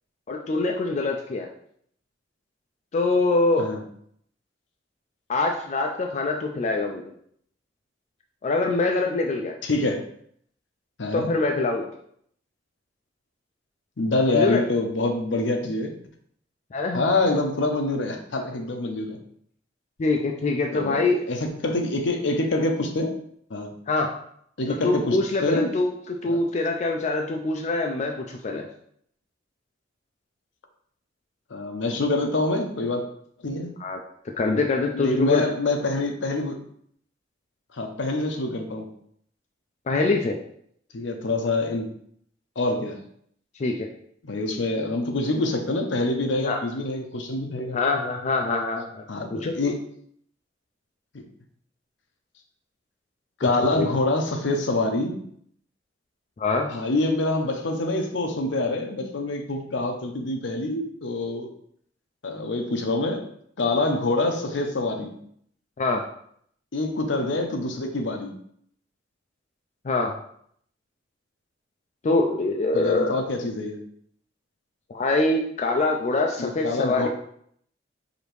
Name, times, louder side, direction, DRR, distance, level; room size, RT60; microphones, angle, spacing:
voice 1, 0.3-1.5 2.9-3.7 5.3-7.0 8.4-9.5 11.1-11.9 14.3-14.6 16.7-17.0 20.0-21.2 23.9-24.1 24.7-28.7 33.8-34.0 34.4-35.4 39.9-40.4 43.6-43.9 46.4-46.6 47.7-49.0 49.3-49.5 53.6-53.9 56.4-56.7 65.8-66.0 69.8-70.1 72.0-73.2 74.9-77.1, left 3 dB, 40° left, 2 dB, 0.4 m, -24 dB
voice 2, 9.6-10.0 11.0-11.3 14.0-15.9 16.9-19.2 20.7-23.2 23.5-23.7 24.6-25.7 26.3-26.4 31.5-33.0 33.4-33.7 34.9-36.6 37.7-38.9 40.9-41.9 42.6-43.0 44.2-47.8 49.1-49.7 51.1-51.2 53.4-55.2 56.7-61.5 62.2-63.3 63.6-65.1 66.7-68.3 72.7-73.8 76.4-77.1, left 2 dB, 70° left, 4 dB, 0.6 m, -26 dB
4.9 x 2.7 x 3.1 m, 0.66 s
head